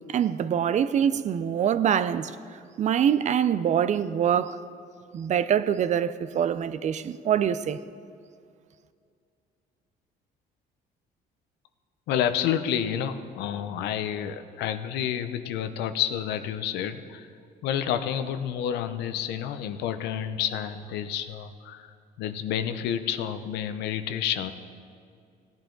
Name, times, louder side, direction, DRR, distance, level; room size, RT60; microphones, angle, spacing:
voice 1, 0.1-2.3 2.8-4.6 5.1-7.8, right 9 dB, 45° right, 0.5 m, -24 dB
voice 2, 12.1-17.3 17.6-24.5, left 9 dB, 85° left, 0.7 m, -29 dB
17.0 x 10.5 x 3.9 m
cardioid pair, 110°, 17 cm